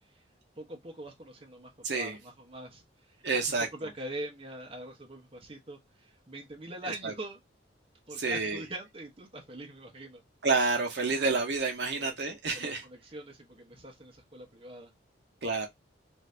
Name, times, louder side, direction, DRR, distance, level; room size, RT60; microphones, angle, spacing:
voice 1, 0.6-7.4 8.1-10.2 11.9-12.1 12.5-14.9, right 1 dB, 30° right, 0.8 m, -43 dB
voice 2, 1.8-2.2 3.2-3.7 7.0-7.1 8.2-8.6 10.4-12.8 15.4-15.7, right 4 dB, 60° right, 0.8 m, -29 dB
2.6 x 2.6 x 3.2 m
head